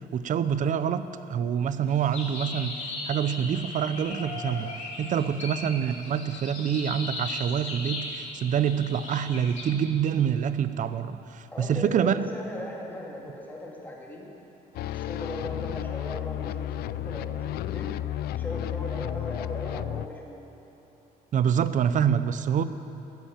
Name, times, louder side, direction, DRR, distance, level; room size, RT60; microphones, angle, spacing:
voice 1, 0.1-4.7 5.0-12.3 21.3-22.6, right 8 dB, 50° right, 13 dB, 0.7 m, -26 dB
sound 1, 1.9-9.6, left 3 dB, 45° left, 3.6 m, -37 dB
voice 2, 11.5-14.3 14.9-17.9 18.3-20.4, left 1 dB, 10° left, -2 dB, 2.8 m, -38 dB
sound 2, 14.7-20.1, left 12 dB, 70° left, 0.4 m, -32 dB
13.0 x 10.0 x 8.7 m, 3.0 s
cardioid pair, 110°, 17 cm